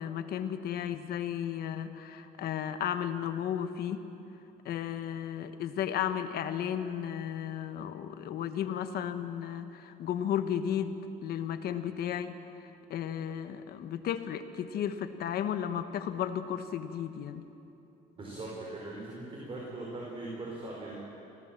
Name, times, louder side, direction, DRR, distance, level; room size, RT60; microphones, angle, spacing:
voice 1, 0.0-4.0 4.6-12.4 12.9-17.4, left 9 dB, 65° left, 9 dB, 1.3 m, -34 dB
voice 2, 18.2-21.0, right 2 dB, 30° right, -4 dB, 5.0 m, -40 dB
24.5 x 17.0 x 7.6 m, 3.0 s
cardioid pair, 110°, 17 cm